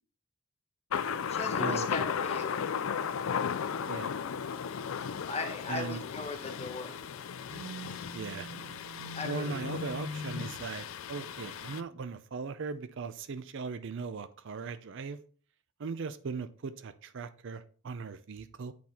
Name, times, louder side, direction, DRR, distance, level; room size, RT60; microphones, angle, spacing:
Thunder, 0.9-11.8, left 7 dB, 70° left, 0.4 m, -35 dB
voice 1, 1.3-2.5 5.3-6.9 9.1-9.7, left 3 dB, 30° left, 3 dB, 1.3 m, -38 dB
voice 2, 5.7-6.0 8.1-8.5 9.2-15.2 15.8-18.7, right 5 dB, 60° right, 13 dB, 0.5 m, -38 dB
Telephone, 7.5-10.6, left 2 dB, 90° right, 2.9 m, -42 dB
8.5 x 4.1 x 4.3 m, 0.42 s
head